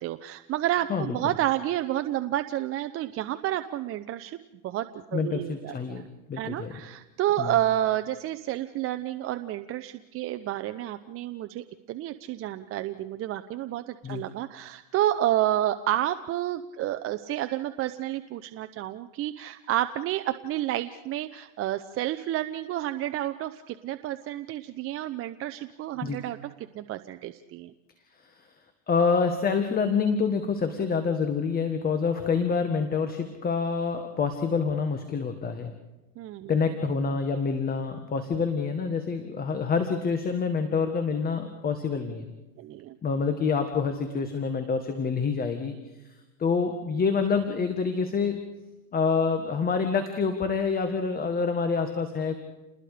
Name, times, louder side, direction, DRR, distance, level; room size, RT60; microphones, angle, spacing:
voice 1, 0.0-4.4 4.6-6.1 6.3-26.5 26.7-27.7 36.2-36.5 42.6-42.9, right 13 dB, 30° right, 10 dB, 0.7 m, -30 dB
voice 2, 5.1-6.8 7.4-7.5 14.0-14.2 26.0-26.2 28.2-28.5 28.9-35.7 36.5-42.3 43.0-45.7 46.0-46.1 46.4-48.4 48.9-52.3, left 5 dB, 20° left, 7 dB, 1.7 m, -27 dB
29.0 x 21.0 x 5.1 m, 1.1 s
supercardioid pair, 125°, 42 cm